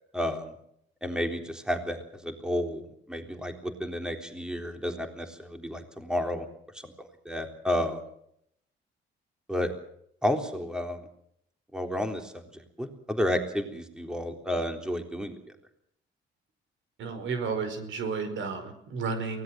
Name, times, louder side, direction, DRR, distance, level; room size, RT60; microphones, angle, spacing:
voice 1, 0.1-0.5 1.0-2.8 3.1-6.5 6.8-6.9 7.3-8.0 9.5-9.7 10.2-11.0 11.7-15.3, equal, 5° right, 5 dB, 3.7 m, -31 dB
voice 2, 17.0-19.4, right 5 dB, 75° right, 9 dB, 4.9 m, -32 dB
23.5 x 18.0 x 7.7 m, 0.73 s
cardioid pair, 90°, 20 cm